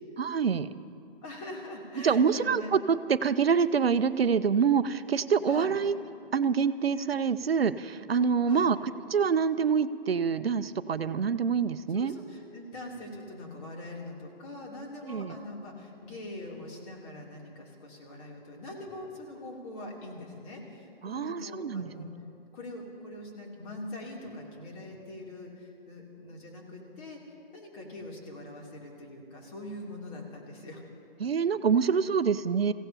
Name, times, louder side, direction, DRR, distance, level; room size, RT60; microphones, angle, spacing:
voice 1, 0.2-0.7 2.0-6.0 6.3-8.8 9.1-12.1 15.1-15.4 21.0-21.9 31.2-32.7, right 6 dB, 80° right, 14 dB, 0.6 m, -26 dB
voice 2, 1.2-2.7 5.5-5.7 8.4-8.7 11.9-22.1 22.5-27.2 27.5-30.8, left 1 dB, 40° left, -1 dB, 3.1 m, -43 dB
28.0 x 16.5 x 2.9 m, 2.5 s
figure-of-eight pair, 120°, 30 cm